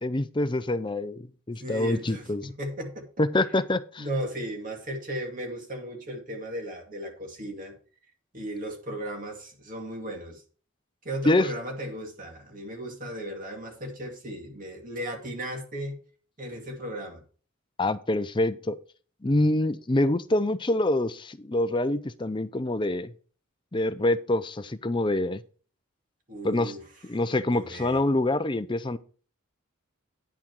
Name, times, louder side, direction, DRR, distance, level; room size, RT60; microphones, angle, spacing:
voice 1, 0.0-2.5 3.2-4.0 11.3-11.5 17.8-18.8 19.2-23.1 23.7-25.4 26.4-26.7 27.0-29.0, left 1 dB, 25° left, 13 dB, 0.5 m, -26 dB
voice 2, 1.6-3.1 4.0-7.8 8.3-10.4 11.0-16.0 16.4-17.2 26.3-26.9 27.4-28.0, right 1 dB, 40° right, 2 dB, 2.3 m, -36 dB
10.0 x 6.2 x 4.7 m, 0.40 s
head